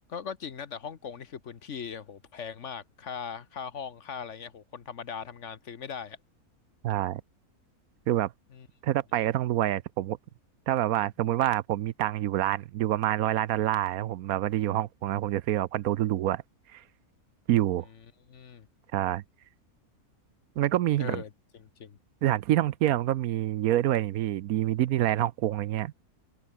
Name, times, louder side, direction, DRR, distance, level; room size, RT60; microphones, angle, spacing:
voice 1, 0.1-6.2 8.5-8.7 18.3-18.7 21.0-21.3 21.6-22.0, left 7 dB, 55° left, 1.3 m, -39 dB
voice 2, 6.8-7.2 8.1-8.3 8.8-10.2 10.7-16.4 16.7-16.8 17.5-17.9 18.9-19.2 20.6-21.2 22.2-25.9, right 13 dB, 75° right, 1.1 m, -27 dB
omnidirectional pair, 1.6 m